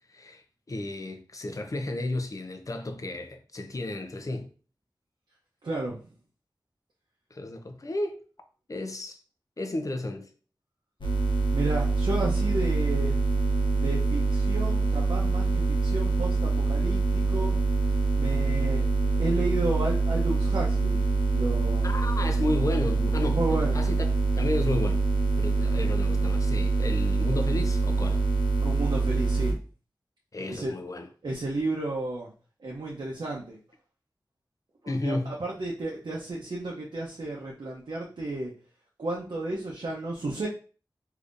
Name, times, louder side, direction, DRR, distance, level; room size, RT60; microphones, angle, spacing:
voice 1, 0.1-4.5 7.3-8.2 8.7-9.2 9.6-10.3 21.8-24.1 24.4-25.1 25.4-28.2 30.3-31.1 34.9-35.4, left 2 dB, 45° left, 0.5 m, -32 dB
voice 2, 5.6-6.0 11.5-13.2 13.8-17.6 18.2-18.9 19.2-21.0 21.3-21.9 23.3-23.8 28.6-29.6 30.5-30.7 31.2-32.3 32.6-33.6 35.0-38.5 39.0-40.5, right 2 dB, 75° right, 0.6 m, -32 dB
sound 1, 11.0-29.5, right 3 dB, 85° left, 0.7 m, -25 dB
3.5 x 2.7 x 2.5 m
wide cardioid pair, 60°, 8 cm